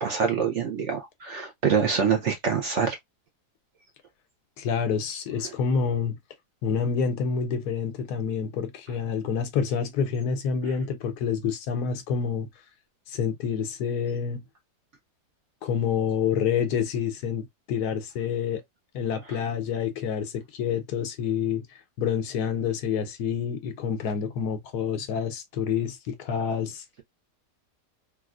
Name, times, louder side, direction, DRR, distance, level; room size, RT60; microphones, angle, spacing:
voice 1, 0.0-3.0, right 6 dB, 60° right, 0.8 m, -25 dB
voice 2, 4.6-6.2 6.6-12.5 13.1-14.4 15.6-18.6 18.9-26.8, left 6 dB, 80° left, 1.2 m, -28 dB
3.9 x 2.4 x 2.3 m
omnidirectional pair, 1.7 m